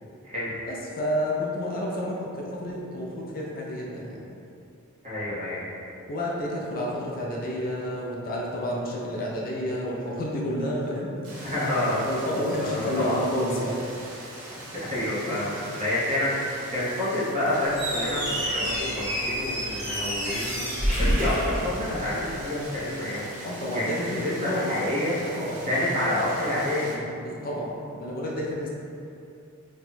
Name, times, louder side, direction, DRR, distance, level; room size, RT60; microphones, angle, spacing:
voice 1, 0.7-4.2 6.1-11.6 12.1-13.8 15.3-15.4 16.0-16.1 23.4-24.9 25.4-25.6 27.2-28.7, equal, 40° left, -3 dB, 0.4 m, -30 dB
voice 2, 5.0-5.7 11.4-12.0 12.6-13.2 14.8-23.3 23.7-23.9 24.1-25.2 25.6-27.0, left 1 dB, 30° right, -10 dB, 1.0 m, -28 dB
sound 1, 11.2-26.9, right 1 dB, 85° right, 0.7 m, -42 dB
Squeak, 17.7-22.3, equal, 5° right, 1.2 m, -28 dB
2.8 x 2.2 x 4.1 m, 2.6 s
head